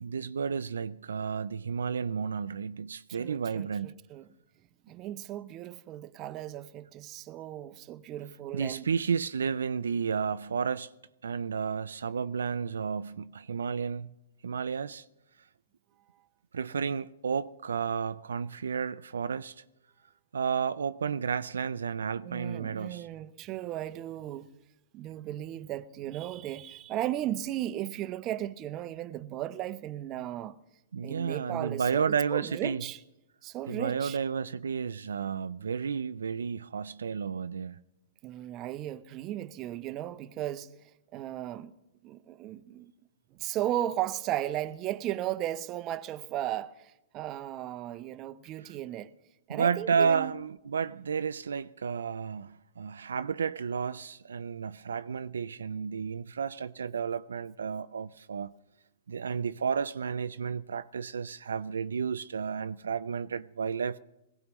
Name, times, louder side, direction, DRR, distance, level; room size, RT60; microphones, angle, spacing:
voice 1, 0.0-3.9 8.5-10.9 11.2-14.1 14.4-15.0 16.5-19.5 20.3-23.1 30.9-32.8 33.7-37.8 49.5-58.5 59.1-64.0, right 6 dB, 80° right, 0.4 m, -32 dB
voice 2, 3.1-4.3 4.9-8.8 22.2-24.5 24.9-30.6 31.0-33.0 33.4-34.2 38.2-40.7 41.1-41.7 42.0-42.9 43.3-49.1 49.5-50.3, right 13 dB, 30° right, 0.6 m, -36 dB
20.5 x 16.5 x 3.1 m
hypercardioid pair, 125°, 0 cm